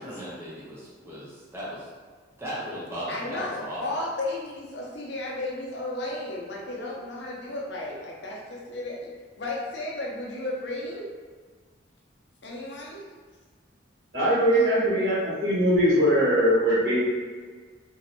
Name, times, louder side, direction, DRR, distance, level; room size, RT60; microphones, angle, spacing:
voice 1, 0.0-1.9 2.4-3.8, equal, 15° right, -8 dB, 0.6 m, -36 dB
voice 2, 3.1-9.1 9.4-11.1 12.4-13.1 14.5-14.7, left 2 dB, 60° left, -3 dB, 0.6 m, -34 dB
voice 3, 14.1-17.0, equal, 60° right, -9 dB, 1.4 m, -21 dB
3.1 x 2.6 x 2.7 m, 1.5 s
head